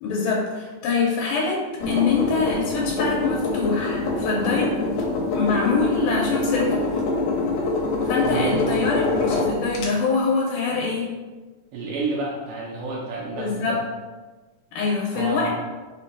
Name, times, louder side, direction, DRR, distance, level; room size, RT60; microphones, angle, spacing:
voice 1, 0.0-4.8 5.3-6.8 8.1-11.1 13.4-13.8 14.7-15.5, left 4 dB, 90° left, -5 dB, 2.6 m, -24 dB
sound 1, 1.8-9.9, left 2 dB, 75° left, 1.9 m, -25 dB
voice 2, 8.2-8.9 11.7-13.8 15.1-15.5, right 3 dB, 80° right, -3 dB, 2.0 m, -30 dB
5.7 x 2.2 x 4.0 m, 1.3 s
omnidirectional pair, 4.1 m